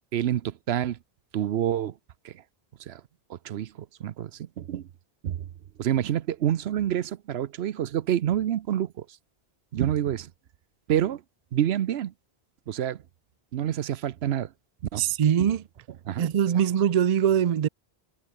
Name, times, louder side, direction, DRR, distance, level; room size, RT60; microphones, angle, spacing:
voice 1, 0.1-1.0 1.3-1.9 2.2-2.3 2.9-3.0 3.3-3.7 4.0-4.9 5.2-5.4 5.8-9.1 9.7-10.3 10.9-11.2 11.5-12.1 12.7-13.0 13.5-14.5 14.9-15.0 15.4-15.5 16.0-16.3, right 11 dB, 85° right, 0.9 m, -27 dB
voice 2, 15.0-15.6 16.2-17.7, right 9 dB, 50° right, 0.5 m, -22 dB
omnidirectional pair, 1.0 m